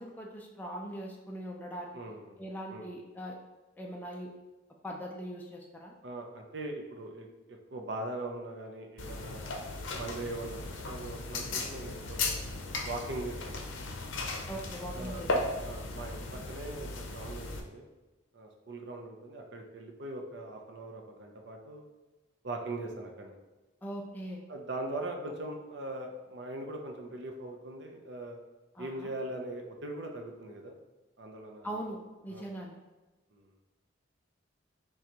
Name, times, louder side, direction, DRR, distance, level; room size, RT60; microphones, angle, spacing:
voice 1, 0.0-2.0 2.4-3.4 3.8-4.3 4.8-5.9 14.5-15.3 23.8-24.4 28.8-29.1 31.6-32.0 32.2-32.8, equal, 10° left, -1 dB, 0.4 m, -41 dB
voice 2, 1.9-2.4 2.7-2.9 6.0-9.6 10.0-12.4 12.8-13.8 14.9-15.2 15.6-17.9 18.3-21.9 22.4-23.3 24.5-28.4 28.8-30.7 31.2-31.9 32.3-32.5 33.3-33.5, right 2 dB, 60° right, 2 dB, 0.6 m, -41 dB
sound 1, 9.0-17.6, left 2 dB, 80° left, 0.6 m, -36 dB
5.9 x 2.3 x 2.9 m, 1.1 s
head